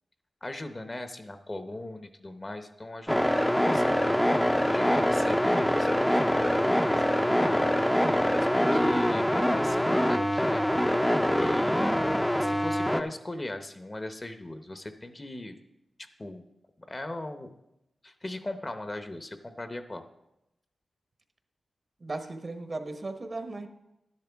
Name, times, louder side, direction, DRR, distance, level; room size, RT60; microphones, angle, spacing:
voice 1, 0.4-3.2 3.5-4.2 4.7-12.0 12.4-15.6 16.0-16.4 16.8-17.5 18.0-20.0, left 1 dB, 30° left, 8 dB, 0.9 m, -39 dB
sound 1, 3.1-13.0, equal, 5° left, 0.6 m, -24 dB
voice 2, 11.3-11.8 22.0-23.7, right 2 dB, 50° right, 7 dB, 1.1 m, -37 dB
11.5 x 10.5 x 3.5 m, 0.88 s
cardioid pair, 60°, 0 cm